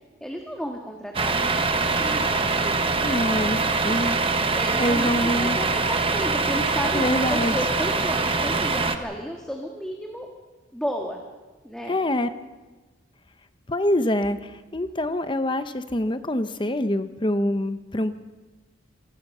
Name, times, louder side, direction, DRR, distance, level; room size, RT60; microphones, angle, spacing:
voice 1, 0.2-3.1 4.5-7.0 7.3-10.3 10.7-11.2 11.6-12.0, equal, 5° left, 1 dB, 1.7 m, -33 dB
Truck, 1.1-9.0, right 3 dB, 25° right, 1.1 m, -23 dB
voice 2, 3.0-4.2 4.8-5.6 6.9-7.5 11.9-12.3 13.7-18.1, left 1 dB, 25° left, 11 dB, 0.8 m, -25 dB
27.0 x 18.5 x 5.6 m, 1.2 s
head